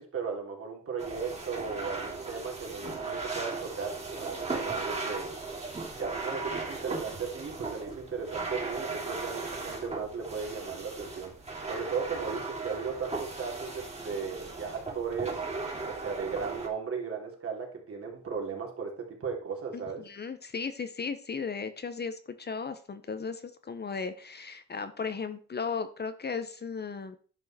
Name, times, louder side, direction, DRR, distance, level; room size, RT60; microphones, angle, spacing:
voice 1, 0.0-5.3 6.0-11.3 11.6-15.4 15.8-20.0, right 5 dB, 50° right, 1 dB, 3.3 m, -36 dB
sound 1, 1.0-16.7, right 3 dB, 20° right, 2.9 m, -37 dB
voice 2, 19.7-27.2, left 5 dB, 35° left, 10 dB, 0.9 m, -36 dB
11.0 x 5.6 x 4.3 m, 0.41 s
cardioid pair, 90°, 30 cm